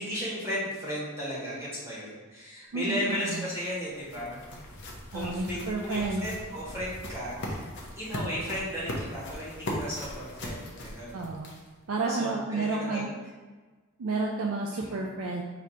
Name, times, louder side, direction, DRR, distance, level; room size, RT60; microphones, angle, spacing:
voice 1, 0.0-4.5 5.1-11.2 12.1-13.0 14.7-14.9, equal, 15° right, -8 dB, 1.4 m, -35 dB
voice 2, 2.7-3.5 5.1-6.3 11.1-11.6 11.9-13.1 14.0-15.4, right 3 dB, 80° right, 0 dB, 0.4 m, -31 dB
sound 1, 3.3-11.8, left 1 dB, 60° left, 0.8 m, -39 dB
4.0 x 2.8 x 4.6 m, 1.3 s
head